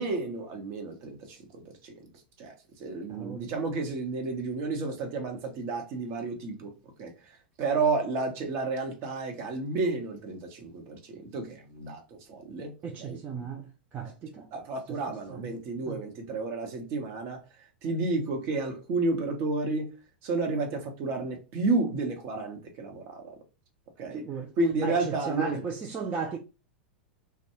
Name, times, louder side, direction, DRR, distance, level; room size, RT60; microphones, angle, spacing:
voice 1, 0.0-1.9 2.4-2.5 2.8-6.7 7.0-12.7 13.0-13.2 14.5-17.4 17.8-19.9 20.2-23.4 24.0-24.2 24.6-25.6, right 3 dB, 50° right, 0.9 m, -31 dB
voice 2, 3.1-3.5 12.8-14.5 14.9-15.0 15.3-15.5 15.9-16.0 24.1-24.5 24.8-26.4, right 5 dB, 30° right, 0.4 m, -36 dB
2.2 x 2.2 x 2.9 m
hypercardioid pair, 95°, 6 cm